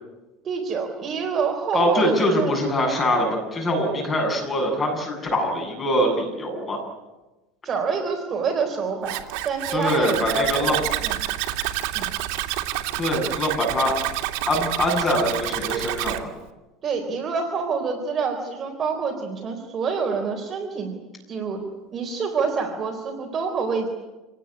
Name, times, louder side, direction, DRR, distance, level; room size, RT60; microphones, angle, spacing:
voice 1, 0.4-2.6 7.6-9.2 9.4-11.2 11.9-12.1 16.8-21.0 21.3-21.6 21.9-23.9, right 5 dB, 25° right, 3 dB, 4.1 m, -27 dB
voice 2, 1.7-6.8 9.7-10.8 13.0-14.0 14.5-16.3, equal, 15° left, 1 dB, 7.8 m, -23 dB
Zipper (clothing), 9.0-16.2, right 15 dB, 70° right, 2.6 m, -28 dB
27.5 x 19.0 x 10.0 m, 1.1 s
cardioid pair, 175°, 0 cm